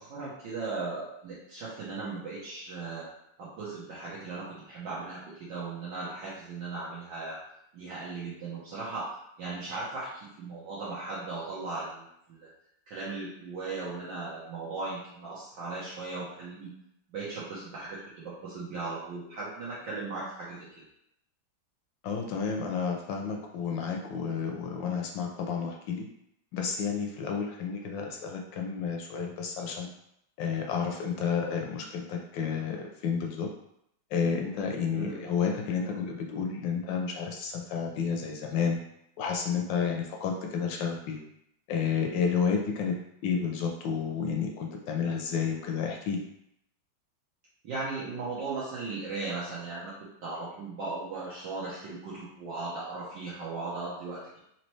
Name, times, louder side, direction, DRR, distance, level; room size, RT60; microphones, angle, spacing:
voice 1, 0.0-3.1 3.4-7.4 7.7-12.5 12.9-16.7 17.1-20.9 34.9-35.2 47.6-54.3, right 3 dB, 70° right, -8 dB, 1.5 m, -37 dB
voice 2, 22.0-26.1 26.5-29.9 30.4-33.5 34.1-38.8 39.2-41.2 41.7-42.9 43.2-46.3, left 6 dB, 75° left, 2 dB, 1.2 m, -31 dB
4.1 x 3.0 x 3.1 m, 0.76 s
omnidirectional pair, 2.2 m